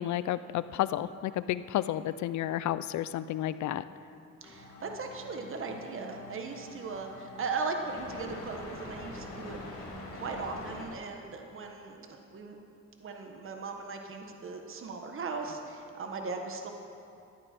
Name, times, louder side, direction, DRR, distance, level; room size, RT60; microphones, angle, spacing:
voice 1, 0.0-3.8, left 12 dB, 70° left, 15 dB, 0.5 m, -31 dB
sound 1, 4.4-10.9, left 2 dB, 50° left, 2.9 m, -45 dB
voice 2, 4.4-12.6 13.0-16.7, right 4 dB, 45° right, 3 dB, 1.3 m, -38 dB
13.5 x 9.9 x 4.4 m, 2.6 s
cardioid pair, 90°, 30 cm